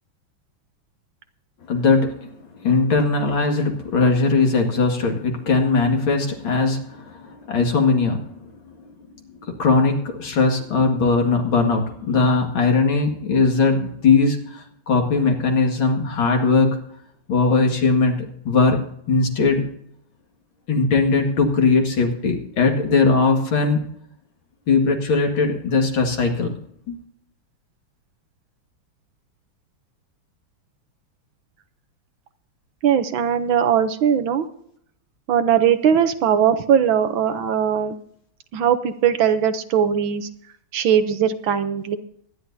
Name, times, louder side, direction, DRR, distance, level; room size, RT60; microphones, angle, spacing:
voice 1, 1.7-2.3 2.6-8.5 9.6-16.8 17.3-18.8 19.1-19.7 20.7-23.8 24.7-26.5 26.9-27.0, left 4 dB, 75° left, 3 dB, 2.8 m, -19 dB
voice 2, 32.8-34.5 35.3-37.9 38.5-40.3 40.7-42.0, right 8 dB, 75° right, 10 dB, 1.6 m, -19 dB
23.5 x 10.5 x 2.8 m, 0.68 s
omnidirectional pair, 2.2 m